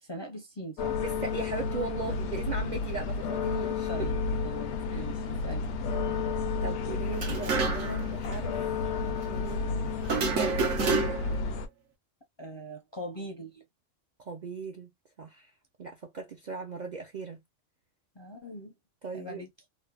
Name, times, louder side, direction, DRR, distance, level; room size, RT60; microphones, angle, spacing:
voice 1, 0.0-1.0 3.9-4.2 4.4-5.7 12.4-13.6 18.2-18.7 19.1-19.5, right 1 dB, 30° left, 0.5 m, -41 dB
sound 1, 0.8-11.7, left 4 dB, 70° left, 0.8 m, -31 dB
voice 2, 1.0-4.1 4.9-5.1 6.6-8.8 9.3-9.9 10.3-10.7 14.2-14.9 15.2-15.5 15.8-17.4 19.0-19.4, right 4 dB, 55° right, 0.5 m, -38 dB
sound 2, 7.1-8.1 8.3-8.4 10.0-11.4, right 4 dB, 85° right, 1.1 m, -28 dB
3.1 x 2.0 x 2.3 m
omnidirectional pair, 1.3 m